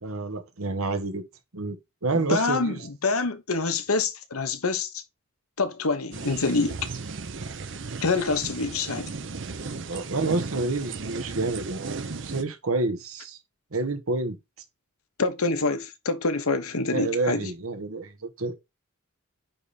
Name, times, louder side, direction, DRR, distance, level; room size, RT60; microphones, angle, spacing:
voice 1, 0.0-1.2 1.5-1.8 2.0-2.8 9.9-13.4 13.7-14.4 16.9-18.5, right 3 dB, 80° right, 1.3 m, -29 dB
voice 2, 2.1-5.0 5.6-6.8 8.0-9.1 15.2-17.5, left 3 dB, 85° left, 1.1 m, -26 dB
sound 1, 6.1-12.4, right 4 dB, 55° right, 0.7 m, -35 dB
9.3 x 3.6 x 4.2 m
head